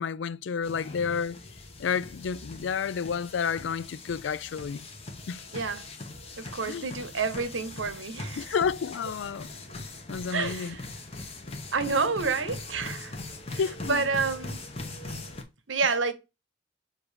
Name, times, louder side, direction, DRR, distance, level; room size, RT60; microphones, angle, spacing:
voice 1, 0.0-1.4 1.8-4.9 5.3-5.4 6.6-6.9 8.4-9.5 10.1-10.8 13.6-14.0, left 6 dB, 80° left, 0.4 m, -30 dB
sound 1, 0.6-15.4, left 2 dB, 35° left, 1.1 m, -41 dB
voice 2, 5.5-5.8 6.4-8.5 10.3-10.9 11.7-13.2 13.5-13.6 13.9-14.6 15.7-16.1, right 4 dB, 85° right, 0.9 m, -29 dB
7.1 x 2.8 x 5.0 m
head